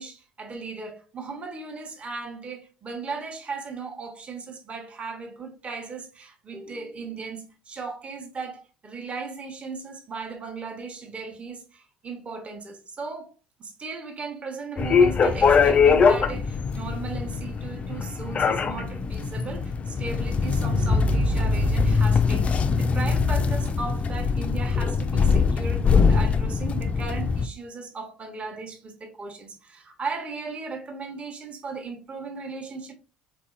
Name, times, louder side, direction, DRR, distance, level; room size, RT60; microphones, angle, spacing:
voice 1, 0.0-13.3 13.6-32.9, right 4 dB, 35° right, 1.0 m, -37 dB
sound 1, 14.8-27.4, left 5 dB, 35° left, 0.4 m, -22 dB
3.9 x 2.7 x 2.4 m
hypercardioid pair, 60°, 4 cm